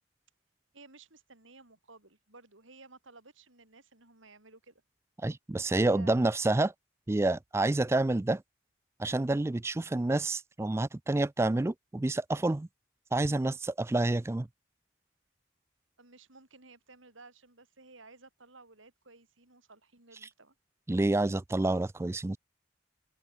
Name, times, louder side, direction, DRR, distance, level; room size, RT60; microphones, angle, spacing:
voice 1, 0.7-4.8 5.7-6.2 16.0-20.5, right 3 dB, 85° right, 6.0 m, -55 dB
voice 2, 5.2-6.7 7.1-8.4 9.0-12.7 13.1-14.5 20.9-22.4, right 2 dB, 15° right, 0.3 m, -28 dB
open air
head